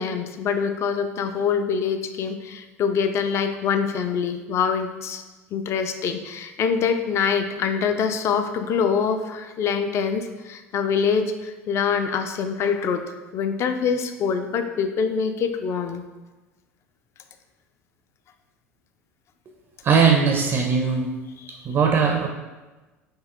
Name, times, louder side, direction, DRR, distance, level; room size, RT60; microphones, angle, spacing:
voice 1, 0.0-5.2 5.5-13.0 13.3-16.0 21.4-21.5, left 6 dB, 35° left, 7 dB, 0.4 m, -24 dB
voice 2, 19.8-21.1 21.7-22.3, right 5 dB, 35° right, 2 dB, 0.4 m, -19 dB
5.4 x 2.6 x 2.4 m, 1.2 s
figure-of-eight pair, 70°, 8 cm